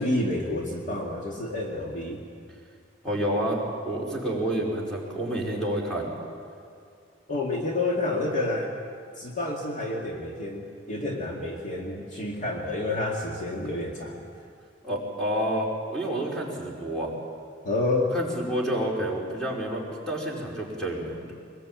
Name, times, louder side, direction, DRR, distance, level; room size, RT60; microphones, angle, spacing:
voice 1, 0.0-2.2 7.3-8.7 9.2-14.2 17.6-18.2, left 2 dB, 45° left, -1 dB, 2.3 m, -29 dB
voice 2, 3.0-6.1 14.8-17.1 18.1-21.3, right 1 dB, 5° left, -4 dB, 5.1 m, -29 dB
23.5 x 21.0 x 8.8 m, 2.4 s
head